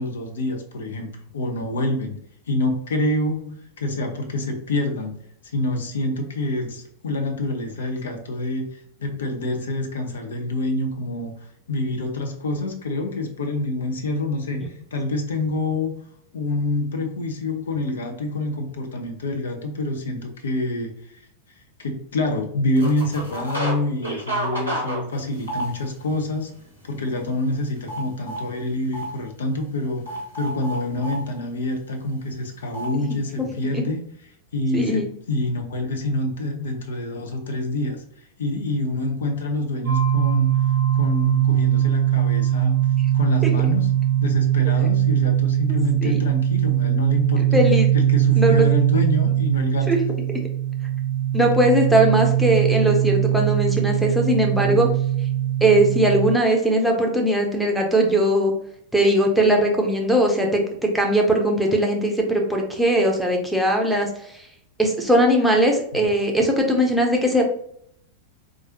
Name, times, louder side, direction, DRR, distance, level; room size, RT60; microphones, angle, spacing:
voice 1, 0.0-2.2 2.5-5.2 5.4-15.9 16.3-21.2 21.8-26.5 26.8-34.0 34.5-40.5 40.9-42.8 43.1-47.7 47.9-49.9 54.6-54.9 65.9-66.1, left 2 dB, 65° left, 4 dB, 0.6 m, -27 dB
sound 1, 22.8-23.8 24.0-26.1 26.6-26.8 27.1-28.4 28.9-29.1 30.1-31.2 32.7-32.9, right 1 dB, 80° left, 1.5 m, -29 dB
voice 2, 34.7-35.1 46.0-46.2 47.4-47.9 48.4-48.7 49.9-50.0 51.3-54.9 55.6-58.5 58.9-64.5 64.8-67.4, right 1 dB, ahead, 0 dB, 0.8 m, -19 dB
sound 2, 39.8-56.3, right 12 dB, 55° right, 0.6 m, -21 dB
4.6 x 2.5 x 2.9 m, 0.69 s
figure-of-eight pair, 90°, 0 cm